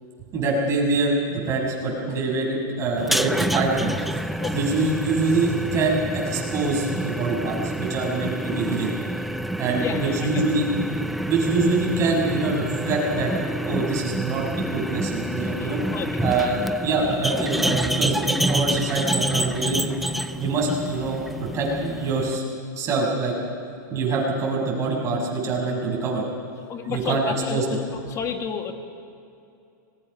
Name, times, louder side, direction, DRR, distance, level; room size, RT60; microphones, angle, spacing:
voice 1, 0.3-4.0 4.5-8.9 9.6-10.7 11.2-13.3 13.6-14.4 14.7-15.8 16.2-20.0 20.4-21.2 21.5-22.4 22.7-23.3 23.9-26.2 26.6-27.2 27.5-27.8, right 3 dB, 30° right, -2 dB, 6.6 m, -25 dB
sound 1, 3.0-22.4, right 1 dB, ahead, 0.5 m, -28 dB
voice 2, 9.8-10.4 15.6-16.5 16.9-17.0 26.7-27.8 28.1-28.7, left 7 dB, 30° left, 5 dB, 1.9 m, -31 dB
25.5 x 20.5 x 5.6 m, 2.6 s
supercardioid pair, 140°, 11 cm